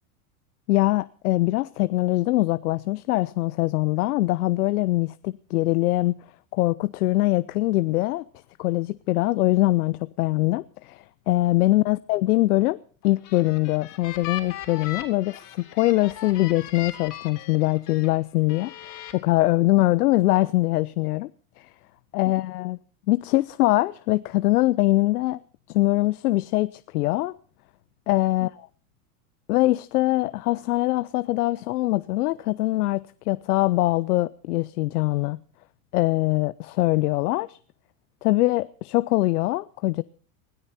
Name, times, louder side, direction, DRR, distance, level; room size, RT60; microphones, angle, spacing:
voice 1, 0.7-6.2 6.5-8.2 8.6-12.8 13.0-21.3 21.6-21.7 22.1-22.8 23.1-25.4 25.7-27.3 28.1-28.5 29.5-35.4 35.9-37.6 38.2-40.0, left 18 dB, 85° left, 0.7 m, -23 dB
sound 1, 13.0-18.1 18.5-19.1, left 11 dB, 45° left, 3.6 m, -38 dB
20.5 x 13.5 x 4.2 m
supercardioid pair, 125°, 44 cm